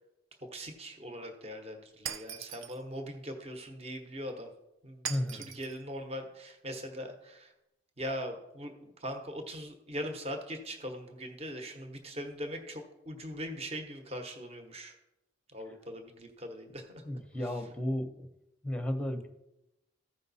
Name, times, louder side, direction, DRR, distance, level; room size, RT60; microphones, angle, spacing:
voice 1, 0.4-4.5 4.8-7.5 8.0-8.7 9.0-14.9 15.5-17.0 17.4-17.7, equal, 30° right, 5 dB, 1.0 m, -41 dB
Shatter, 2.1-2.8 5.1-5.8, right 8 dB, 75° right, 0.5 m, -40 dB
voice 2, 5.1-5.5 17.0-18.3 18.6-19.3, left 1 dB, 5° left, 6 dB, 0.8 m, -33 dB
14.5 x 5.3 x 4.1 m, 0.90 s
head